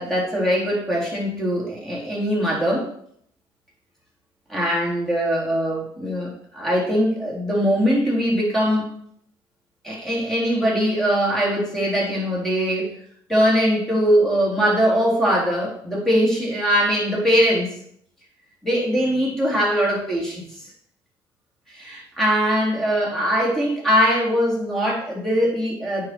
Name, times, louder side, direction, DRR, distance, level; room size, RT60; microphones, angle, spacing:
voice 1, 0.0-2.9 4.5-8.9 9.8-12.9 13.3-17.8 18.6-20.7 21.7-26.1, equal, 5° left, -5 dB, 3.6 m, -21 dB
9.1 x 4.9 x 4.5 m, 0.68 s
cardioid pair, 105°, 10 cm